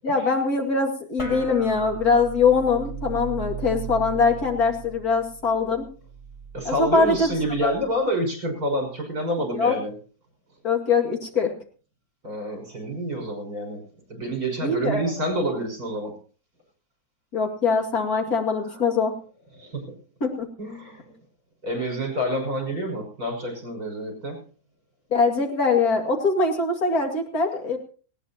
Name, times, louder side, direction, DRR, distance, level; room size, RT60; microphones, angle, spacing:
voice 1, 0.0-5.8 6.6-7.3 7.6-7.7 9.5-9.7 10.6-11.5 14.6-15.0 17.3-19.1 20.2-20.5 25.1-27.8, left 4 dB, 50° left, 3 dB, 2.8 m, -22 dB
sound 1, 1.2-7.9, right 6 dB, 15° left, 2.4 m, -37 dB
voice 2, 6.5-9.9 12.2-13.8 14.1-16.1 18.7-18.8 19.6-20.0 20.6-21.2 21.6-24.4, equal, 55° right, 3 dB, 6.3 m, -28 dB
19.0 x 17.5 x 2.9 m, 0.40 s
omnidirectional pair, 2.0 m